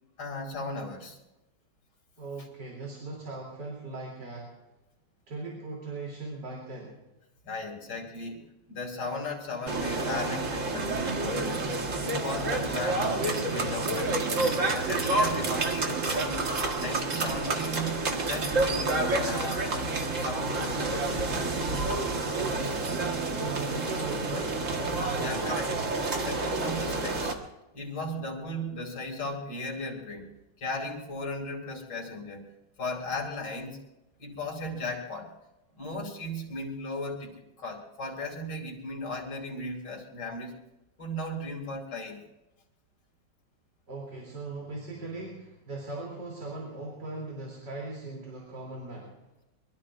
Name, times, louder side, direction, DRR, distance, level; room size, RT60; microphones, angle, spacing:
voice 1, 0.2-1.2 7.4-11.7 12.0-14.4 14.7-19.9 20.2-21.0 25.2-25.8 26.2-27.3 27.7-30.3 30.6-32.5 32.8-33.8 34.2-35.3 35.7-40.6 41.0-42.2, left 1 dB, 75° left, 1 dB, 3.2 m, -36 dB
voice 2, 2.2-4.5 5.3-7.0 22.3-24.7 43.9-49.3, right 2 dB, 75° right, -3 dB, 3.8 m, -39 dB
sound 1, 9.7-27.3, right 2 dB, 45° right, 1.8 m, -29 dB
23.5 x 23.0 x 2.5 m, 0.96 s
omnidirectional pair, 1.9 m